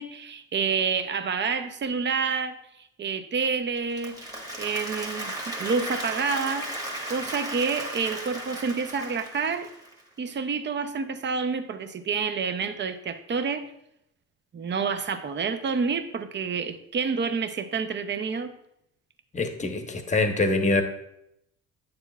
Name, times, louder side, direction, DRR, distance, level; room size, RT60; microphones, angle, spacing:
voice 1, 0.0-2.6 3.0-4.2 4.6-6.7 7.1-9.7 10.2-13.7 14.5-18.5, right 5 dB, 30° right, 9 dB, 0.6 m, -28 dB
Applause, 3.8-10.0, right 1 dB, 10° right, 1.4 m, -35 dB
voice 2, 19.3-20.8, left 2 dB, 20° left, 5 dB, 0.9 m, -24 dB
9.1 x 6.8 x 2.3 m, 0.79 s
cardioid pair, 100°, 35 cm